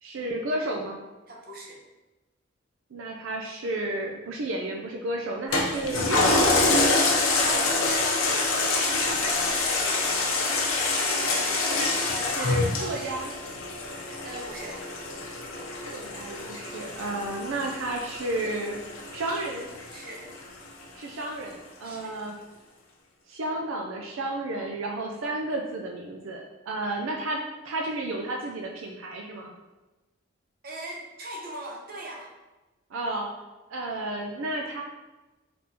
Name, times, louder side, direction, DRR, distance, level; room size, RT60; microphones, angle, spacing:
voice 1, 0.0-1.0 2.9-6.6 11.8-13.3 15.9-18.8 19.1-19.7 20.9-22.3 23.3-29.5 32.9-33.3 33.7-34.8, right 1 dB, 75° right, 0 dB, 0.4 m, -32 dB
voice 2, 1.3-1.8 7.3-10.6 11.2-11.7 12.3-12.5 12.8-13.4 14.2-14.8 19.9-20.3 21.8-22.2 30.6-32.3, right 1 dB, 45° right, -1 dB, 0.7 m, -41 dB
Toilet flush, 5.5-20.3 20.8-20.9, left 3 dB, 90° left, 0.7 m, -26 dB
4.1 x 3.4 x 2.8 m, 1.1 s
head